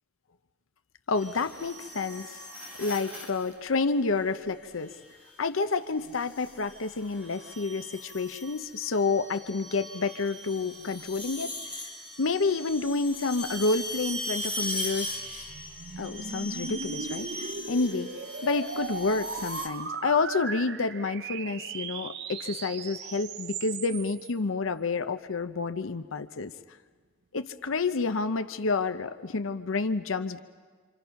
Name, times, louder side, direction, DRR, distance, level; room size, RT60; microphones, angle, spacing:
voice 1, 1.1-2.5 2.8-4.9 5.4-11.6 12.2-15.1 16.0-18.1 18.4-26.5 27.3-30.4, left 4 dB, 85° left, 9 dB, 0.7 m, -29 dB
sound 1, 1.1-3.5 4.9-5.3 6.1-19.7, left 1 dB, 5° right, 4.0 m, -39 dB
sound 2, 14.6-24.3, right 5 dB, 55° right, 0.6 m, -38 dB
27.5 x 26.5 x 5.8 m, 1.5 s
head